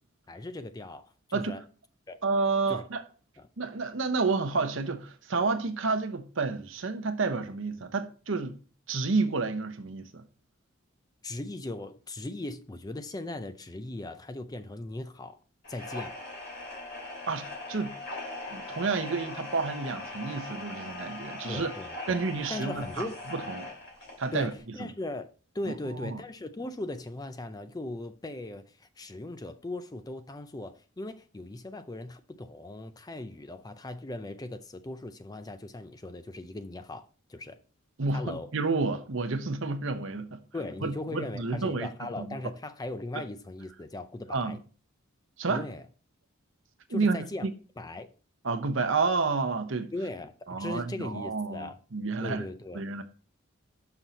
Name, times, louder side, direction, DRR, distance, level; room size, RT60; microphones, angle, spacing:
voice 1, 0.3-1.6 2.1-2.2 2.7-2.8 3.4-3.5 11.2-15.4 15.7-16.2 21.5-22.2 22.5-23.2 24.3-37.6 38.1-38.5 40.5-44.6 45.5-45.8 46.9-47.5 47.8-48.1 49.9-51.8 52.2-52.8, left 2 dB, 20° left, 0.4 m, -38 dB
voice 2, 2.2-3.0 3.6-8.6 8.9-10.2 17.3-18.0 18.5-21.7 22.1-23.7 24.2-24.5 25.7-26.2 38.0-40.4 40.8-41.9 42.2-42.4 44.3-44.6 45.4-45.6 46.9-47.5 48.4-49.9 50.5-52.4 52.7-53.0, right 4 dB, 65° right, 0.8 m, -30 dB
sound 1, 15.6-24.6, left 2 dB, 55° left, 2.7 m, -40 dB
6.1 x 5.8 x 4.0 m
head